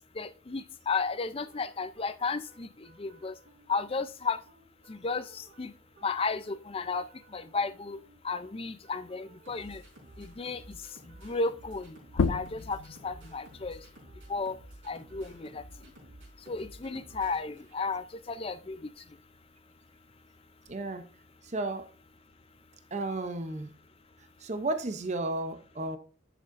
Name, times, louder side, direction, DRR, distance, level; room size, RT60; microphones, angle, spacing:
voice 1, 0.2-2.7 3.0-3.3 3.7-4.4 4.9-5.7 6.0-7.0 7.3-8.0 8.2-9.8 10.2-10.6 11.2-12.8 13.0-13.8 14.3-14.6 14.9-15.6 16.5-18.8, left 4 dB, 30° left, 0.4 m, -33 dB
sound 1, 1.5-18.1, right 1 dB, 65° right, 4.3 m, -54 dB
sound 2, 12.1-17.3 17.7-19.5, left 4 dB, 85° left, 0.5 m, -36 dB
voice 2, 20.7-21.1 21.4-21.9 22.9-23.7 24.4-26.0, right 2 dB, 35° right, 0.6 m, -33 dB
10.5 x 6.5 x 2.6 m
head